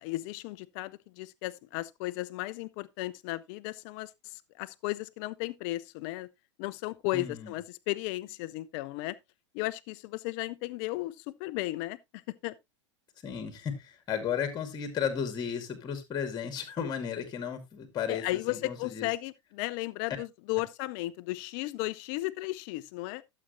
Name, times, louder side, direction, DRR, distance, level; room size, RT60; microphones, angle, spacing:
voice 1, 0.0-6.3 6.6-9.2 9.5-12.5 18.1-23.2, left 19 dB, 45° left, 0.7 m, -35 dB
voice 2, 7.1-7.5 13.2-19.1, left 7 dB, 25° left, 2.4 m, -34 dB
12.5 x 7.8 x 2.6 m
hypercardioid pair, 100°, 16 cm